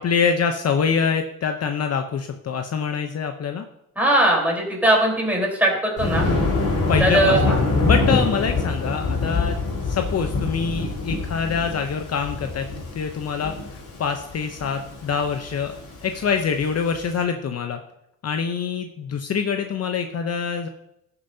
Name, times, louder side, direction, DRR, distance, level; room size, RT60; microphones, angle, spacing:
voice 1, 0.0-3.6 6.9-9.6 9.9-12.7 12.9-15.8 16.0-17.8 18.2-20.7, left 6 dB, 50° left, 6 dB, 0.7 m, -25 dB
voice 2, 4.0-6.3 7.0-7.6, right 1 dB, 5° right, -2 dB, 3.9 m, -20 dB
Thunder, 6.0-17.1, left 3 dB, 65° left, 4.1 m, -25 dB
15.0 x 6.8 x 2.7 m, 0.83 s
cardioid pair, 90°, 33 cm